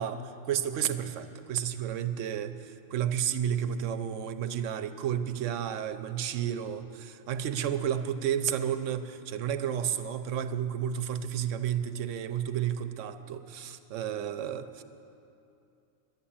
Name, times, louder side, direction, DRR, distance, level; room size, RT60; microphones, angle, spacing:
voice 1, 0.0-14.8, right 9 dB, 85° right, 10 dB, 1.0 m, -32 dB
11.5 x 10.0 x 8.7 m, 2.7 s
omnidirectional pair, 1.3 m